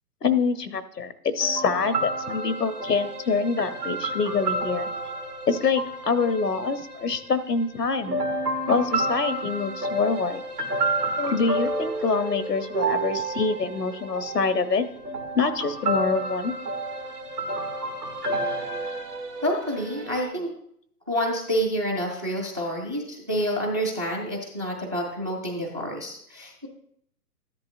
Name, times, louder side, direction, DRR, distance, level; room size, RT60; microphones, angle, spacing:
voice 1, 0.2-4.9 5.5-8.2 8.7-10.4 11.2-14.9 15.3-16.5, left 5 dB, 80° left, 12 dB, 0.9 m, -25 dB
sound 1, 1.4-7.4 8.0-20.3, right 2 dB, 75° right, 1.5 m, -30 dB
voice 2, 19.4-20.5 21.1-26.7, equal, 15° right, 1 dB, 0.4 m, -28 dB
13.5 x 10.5 x 2.5 m, 0.68 s
figure-of-eight pair, 120°, 47 cm